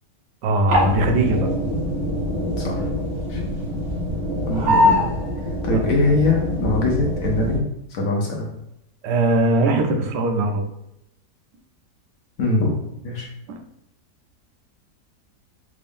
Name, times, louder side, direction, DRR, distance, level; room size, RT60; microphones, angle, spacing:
voice 1, 0.4-1.5 5.7-5.9 9.0-10.7 13.5-13.6, right 2 dB, 80° right, 4 dB, 1.2 m, -20 dB
sound 1, 0.7-7.6, left 1 dB, 55° right, 1.3 m, -23 dB
voice 2, 2.5-3.0 3.3-3.4 4.5-5.1 5.6-8.5 12.4-12.8 13.0-13.3, left 2 dB, 65° left, -1 dB, 1.0 m, -22 dB
3.5 x 2.5 x 3.4 m, 0.83 s
omnidirectional pair, 1.8 m